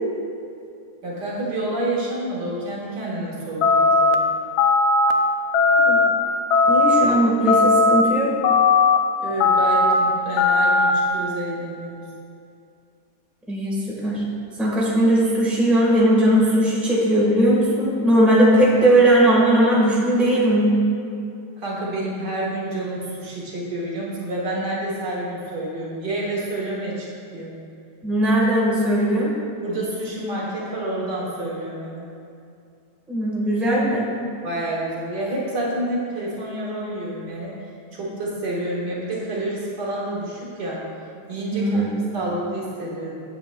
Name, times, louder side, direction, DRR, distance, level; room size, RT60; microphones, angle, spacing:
voice 1, 1.0-4.3 9.2-12.0 18.8-18.9 21.6-27.1 27.3-27.6 29.6-32.1 34.4-37.5 37.9-40.9 41.3-41.8 42.1-43.2, right 1 dB, 75° right, -5 dB, 2.1 m, -28 dB
sound 1, 3.6-4.2 4.6-5.1 5.5-6.1 6.5-7.0 7.5-8.0 8.4-9.0 9.4-9.9 10.4-10.9, left 3 dB, 75° left, 1.0 m, -17 dB
voice 2, 6.7-8.3 13.5-14.2 14.6-20.7 28.0-29.3 33.1-34.1 41.5-41.9, right 1 dB, ahead, -6 dB, 1.2 m, -18 dB
11.0 x 7.5 x 2.3 m, 2.5 s
omnidirectional pair, 1.9 m